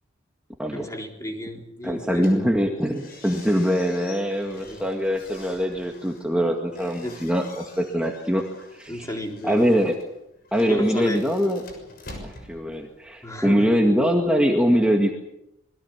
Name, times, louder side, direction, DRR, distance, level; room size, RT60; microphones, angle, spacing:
voice 1, 0.7-2.3 4.6-4.8 7.0-7.2 8.9-9.7 10.7-11.2 13.2-13.6, equal, 15° left, 3 dB, 3.9 m, -32 dB
voice 2, 1.8-8.4 8.7-9.1 9.4-10.0 10.5-11.6 12.2-15.1, equal, 5° right, 1 dB, 2.0 m, -23 dB
sound 1, 2.1-13.3, left 2 dB, 45° left, 6.5 m, -47 dB
26.5 x 21.5 x 7.4 m, 0.85 s
head